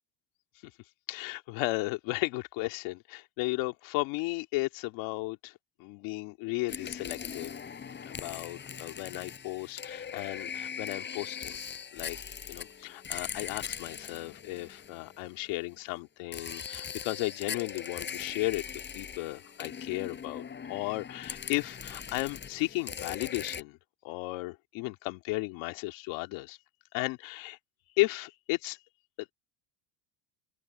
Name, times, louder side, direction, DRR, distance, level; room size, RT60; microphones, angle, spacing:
voice 1, 1.1-5.5 5.8-7.5 8.1-11.6 11.9-12.2 12.5-18.6 18.9-23.8 24.0-26.6 26.9-27.6 28.0-28.8, left 21 dB, 80° left, 2.3 m, -34 dB
sound 1, 6.7-15.5 16.3-23.6, left 7 dB, 25° left, 5.1 m, -41 dB
open air
cardioid pair, 170°, 46 cm